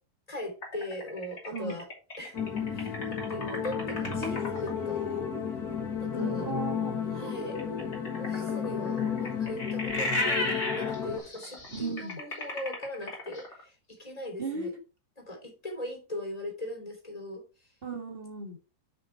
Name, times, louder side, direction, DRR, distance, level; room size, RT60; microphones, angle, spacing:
voice 1, 0.3-1.9 2.2-2.4 2.7-5.0 6.0-6.5 7.1-7.6 8.2-14.7 15.2-17.7, left 1 dB, 20° left, 3.2 m, -40 dB
sound 1, 0.6-4.7 7.6-13.6, left 1 dB, 40° left, 3.1 m, -34 dB
sound 2, 2.3-11.2, left 7 dB, 70° left, 2.4 m, -33 dB
voice 2, 4.2-5.3 6.1-7.0 11.7-12.2 14.4-14.7 17.8-18.6, right 1 dB, 35° right, 2.2 m, -36 dB
7.1 x 5.9 x 4.5 m
omnidirectional pair, 1.7 m